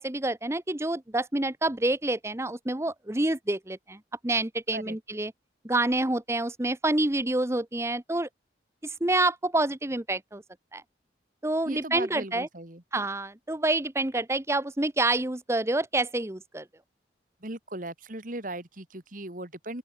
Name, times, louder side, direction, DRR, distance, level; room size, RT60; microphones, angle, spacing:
voice 1, 0.0-4.0 4.2-5.3 5.6-8.3 8.8-10.4 10.7-10.8 11.4-12.5 12.9-16.6, right 2 dB, 15° right, 0.9 m, -27 dB
voice 2, 11.6-12.8 17.4-19.8, right 1 dB, 50° right, 3.0 m, -38 dB
open air
head